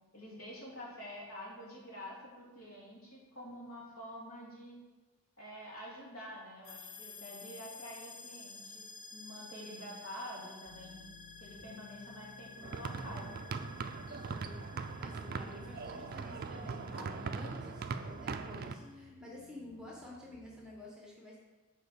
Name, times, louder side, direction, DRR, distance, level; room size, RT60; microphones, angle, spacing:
voice 1, 0.1-4.8 5.4-11.1 11.4-13.3, equal, 70° left, -5 dB, 2.5 m, -48 dB
sound 1, 6.6-18.9, left 4 dB, 35° left, 0.7 m, -53 dB
sound 2, 10.7-20.7, left 2 dB, 10° left, 1.4 m, -56 dB
sound 3, 12.6-18.7, right 4 dB, 40° right, 0.3 m, -40 dB
voice 2, 14.2-14.7 15.0-21.4, left 1 dB, 5° right, -3 dB, 1.2 m, -51 dB
6.7 x 4.5 x 6.6 m, 1.2 s
head